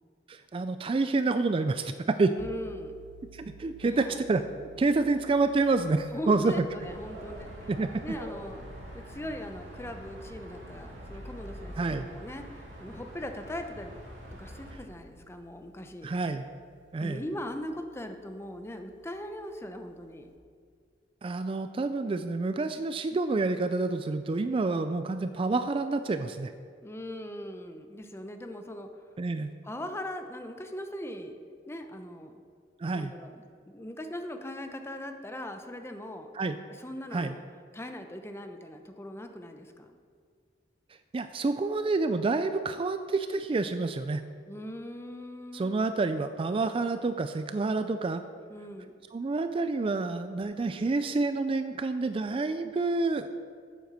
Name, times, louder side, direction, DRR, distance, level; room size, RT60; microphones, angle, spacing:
voice 1, 0.3-2.3 3.3-4.4 4.8-6.6 7.7-7.9 11.8-12.1 16.0-16.5 16.9-17.2 21.2-26.5 29.2-29.5 32.8-33.1 36.3-36.6 37.1-37.3 41.1-44.2 45.5-48.2 49.1-53.4, right 3 dB, 30° right, 10 dB, 0.3 m, -28 dB
voice 2, 2.3-3.0 3.8-4.2 6.1-7.7 8.0-8.7 8.9-13.9 14.4-16.1 17.0-20.3 26.8-28.9 29.6-31.4 31.7-32.4 32.9-36.3 36.7-37.4 37.7-39.9 44.5-45.9 48.5-49.0, left 1 dB, 15° left, 6 dB, 0.7 m, -40 dB
sound 1, 2.4-20.4, right 4 dB, 70° right, 0.9 m, -56 dB
sound 2, 6.8-14.7, equal, 85° right, 2.6 m, -45 dB
8.9 x 7.8 x 6.7 m, 2.2 s
head